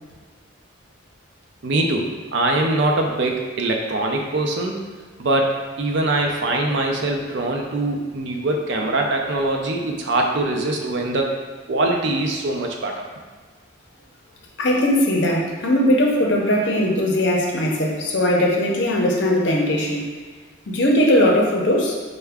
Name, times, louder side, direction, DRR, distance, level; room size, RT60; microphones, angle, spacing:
voice 1, 1.6-4.8 5.2-11.3 11.7-12.9, right 2 dB, 60° right, 1 dB, 0.5 m, -22 dB
voice 2, 14.6-20.1 20.7-21.9, left 1 dB, 55° left, -1 dB, 0.6 m, -19 dB
4.6 x 2.2 x 3.4 m, 1.5 s
head